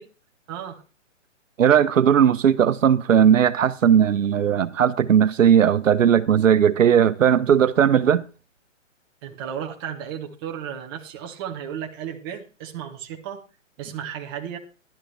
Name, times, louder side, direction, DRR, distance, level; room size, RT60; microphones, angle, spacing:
voice 1, 0.5-0.8 9.2-13.4 13.8-14.6, right 9 dB, 20° right, 1.2 m, -34 dB
voice 2, 1.6-8.2, right 8 dB, 80° right, 1.0 m, -17 dB
12.0 x 11.5 x 3.4 m
hypercardioid pair, 170°, 38 cm